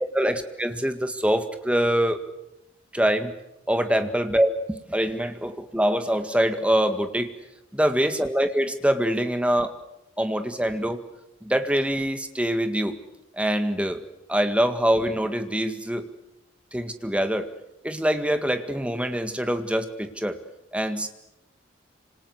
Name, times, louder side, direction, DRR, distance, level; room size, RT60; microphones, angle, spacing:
voice 1, 0.1-2.2 2.9-3.3 3.7-7.3 7.7-9.7 10.2-11.0 11.4-13.0 13.4-14.0 14.3-16.1 16.7-17.5 17.8-20.4 20.7-21.1, equal, 5° right, 7 dB, 1.9 m, -24 dB
27.0 x 26.5 x 8.0 m, 0.88 s
head